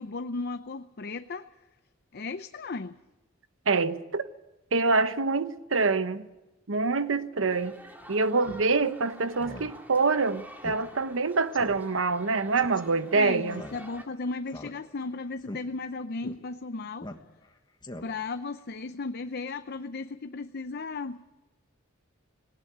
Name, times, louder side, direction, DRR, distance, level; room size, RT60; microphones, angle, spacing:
voice 1, 0.0-1.5 2.1-3.0 13.1-17.1 18.0-21.4, left 3 dB, 55° left, 10 dB, 0.6 m, -35 dB
voice 2, 3.7-4.3 4.7-6.2 6.7-7.7 8.1-13.6, right 4 dB, 70° right, 12 dB, 1.0 m, -25 dB
sound 1, 7.5-14.0, equal, 10° right, 2.2 m, -49 dB
Speech synthesizer, 8.4-8.6 9.0-9.1 9.4-9.7 10.0-10.1 10.6-10.8 11.1-11.2 11.5-11.8 12.6-12.8 13.5-14.1 14.5-15.1 15.4-15.6 16.2-16.4 17.0-17.5 17.8-18.3, left 1 dB, 20° left, 1.3 m, -42 dB
19.0 x 18.5 x 8.0 m, 1.0 s
head